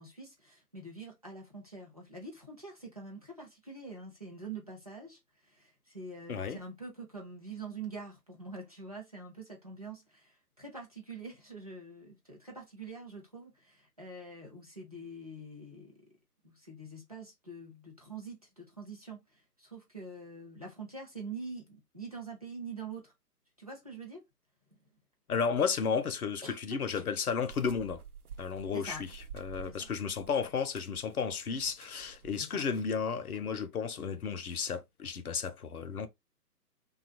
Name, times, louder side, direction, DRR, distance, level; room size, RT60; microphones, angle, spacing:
voice 1, 0.0-16.0 16.4-23.1 23.6-24.2 26.4-27.1 28.7-29.0 29.7-29.9 32.4-32.6, right 3 dB, 25° right, 0.5 m, -45 dB
voice 2, 6.3-6.6 25.3-28.0 28.4-36.1, left 6 dB, 65° left, 0.6 m, -33 dB
sound 1, 27.5-33.0, right 8 dB, 65° right, 0.6 m, -51 dB
2.9 x 2.3 x 2.7 m
figure-of-eight pair, 145°, 48 cm